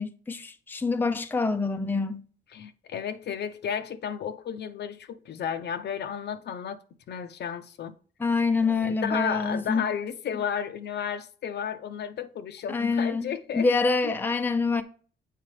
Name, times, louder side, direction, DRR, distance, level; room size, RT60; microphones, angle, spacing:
voice 1, 0.0-2.2 8.2-9.8 12.7-14.8, left 4 dB, 10° left, 0.5 m, -26 dB
voice 2, 2.5-6.8 7.1-8.0 8.8-13.7 14.0-14.1, left 8 dB, 60° left, 0.6 m, -33 dB
7.4 x 4.7 x 3.2 m
cardioid pair, 90°, 20 cm